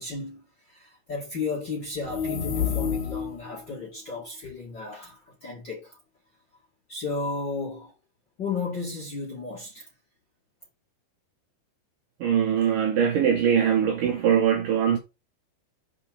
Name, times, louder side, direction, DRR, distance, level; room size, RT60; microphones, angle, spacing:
voice 1, 0.0-6.0 6.9-7.9 8.4-9.9, left 4 dB, 40° left, 1.7 m, -34 dB
sound 1, 2.0-3.5, left 7 dB, 55° left, 2.0 m, -28 dB
voice 2, 12.2-15.0, right 8 dB, 75° right, 2.1 m, -22 dB
5.3 x 5.1 x 5.8 m
omnidirectional pair, 4.7 m